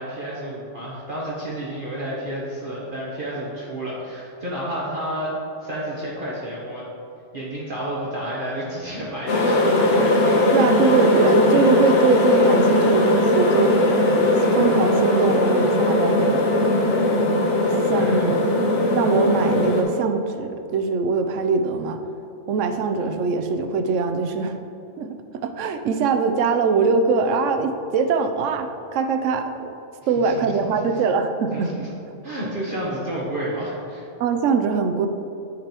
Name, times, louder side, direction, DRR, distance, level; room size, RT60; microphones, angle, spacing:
voice 1, 0.0-5.3 5.6-6.8 7.3-9.8 10.2-10.4 17.9-18.4 30.2-30.8 31.5-31.9 32.2-34.1, right 1 dB, 45° right, -6 dB, 1.1 m, -30 dB
sound 1, 9.3-19.8, left 1 dB, 65° left, 1.2 m, -19 dB
voice 2, 10.5-13.7 14.5-16.8 17.7-18.4 18.9-22.0 22.5-24.6 25.0-29.7 30.1-31.7 34.2-35.1, right 5 dB, 75° right, 7 dB, 0.9 m, -22 dB
9.6 x 5.4 x 2.9 m, 2.8 s
omnidirectional pair, 1.3 m